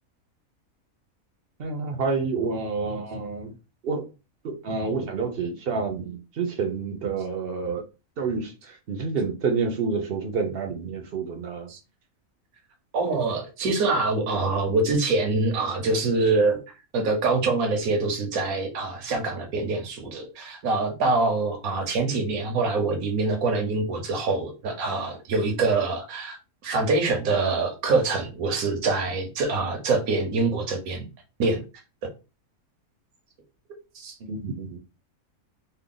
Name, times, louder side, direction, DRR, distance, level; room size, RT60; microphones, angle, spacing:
voice 1, 1.6-3.5 3.8-4.1 4.4-7.8 8.2-11.7 34.3-34.8, right 4 dB, 55° right, 0.7 m, -28 dB
voice 2, 12.9-16.6 16.9-31.1 31.4-31.6 33.9-34.1, right 3 dB, 85° right, 1.3 m, -25 dB
3.4 x 2.1 x 3.7 m
omnidirectional pair, 1.5 m